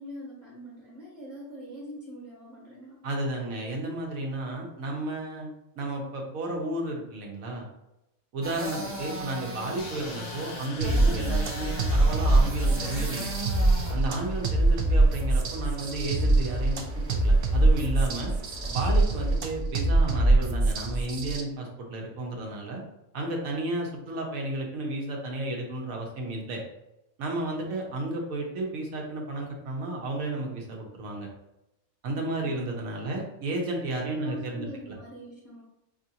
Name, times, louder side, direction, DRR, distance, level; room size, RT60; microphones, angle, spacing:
voice 1, 0.0-3.0 32.1-32.7 33.0-33.2 34.0-35.6, equal, 35° right, -6 dB, 1.3 m, -43 dB
voice 2, 3.0-5.5 5.8-7.7 8.3-13.3 13.9-18.3 18.7-22.8 23.1-26.6 27.2-31.3 32.0-34.7, right 2 dB, 90° right, 0 dB, 1.3 m, -33 dB
sound 1, 8.4-19.4, right 1 dB, 10° right, 0.8 m, -40 dB
sound 2, 9.8-14.5, left 2 dB, 75° left, 1.0 m, -41 dB
sound 3, 10.8-21.4, right 2 dB, 60° right, 0.6 m, -23 dB
5.3 x 2.5 x 2.8 m, 0.88 s
omnidirectional pair, 1.4 m